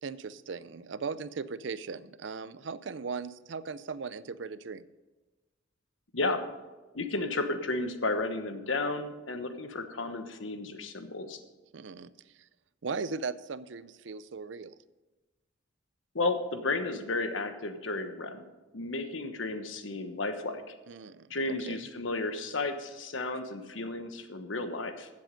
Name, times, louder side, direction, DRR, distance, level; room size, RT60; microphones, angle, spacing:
voice 1, 0.0-4.8 11.7-12.1 12.4-12.5 12.8-14.8 20.9-21.9, right 5 dB, 70° right, 16 dB, 0.5 m, -38 dB
voice 2, 6.1-6.4 6.9-11.4 16.1-18.4 18.7-20.7 21.3-25.1, left 2 dB, 85° left, 8 dB, 1.2 m, -33 dB
15.0 x 7.6 x 5.2 m, 1.2 s
head